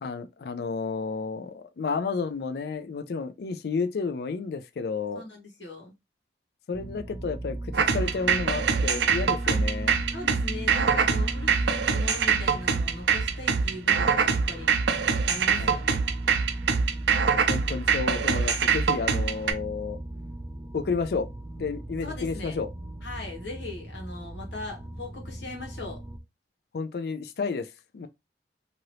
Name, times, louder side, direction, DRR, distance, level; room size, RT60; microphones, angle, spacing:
voice 1, 0.0-5.2 6.7-10.0 15.5-15.8 17.5-20.0 20.7-21.3 21.6-22.7 26.7-28.1, left 4 dB, 60° left, 0.4 m, -31 dB
voice 2, 5.1-5.9 9.4-9.7 10.1-14.8 15.3-16.0 22.0-22.6 23.0-26.0, left 2 dB, 85° left, 1.2 m, -40 dB
sound 1, 6.7-26.2, right 1 dB, 15° right, 0.5 m, -37 dB
sound 2, 7.7-19.5, right 6 dB, 85° right, 0.5 m, -24 dB
2.8 x 2.6 x 3.1 m
head